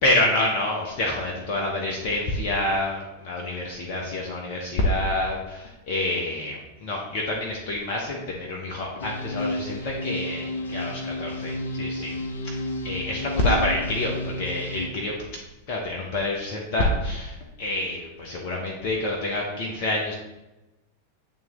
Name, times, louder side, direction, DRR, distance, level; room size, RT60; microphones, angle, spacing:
voice 1, 0.0-12.1 12.4-15.1 15.7-20.1, left 1 dB, 45° left, -1 dB, 1.0 m, -27 dB
sound 1, 9.0-14.9, left 1 dB, 70° left, 0.7 m, -32 dB
8.8 x 3.1 x 3.7 m, 1.0 s
figure-of-eight pair, 90°, 0 cm